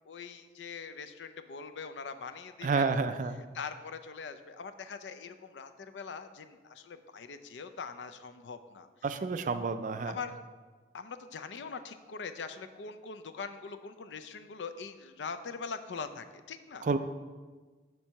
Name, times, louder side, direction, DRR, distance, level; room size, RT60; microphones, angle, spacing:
voice 1, 0.1-2.9 3.5-8.9 10.0-10.4 10.9-16.9, left 5 dB, 85° left, 10 dB, 0.5 m, -42 dB
voice 2, 2.6-3.4 9.0-10.2 16.8-17.0, right 4 dB, 45° right, 10 dB, 0.3 m, -30 dB
6.2 x 4.5 x 5.5 m, 1.4 s
head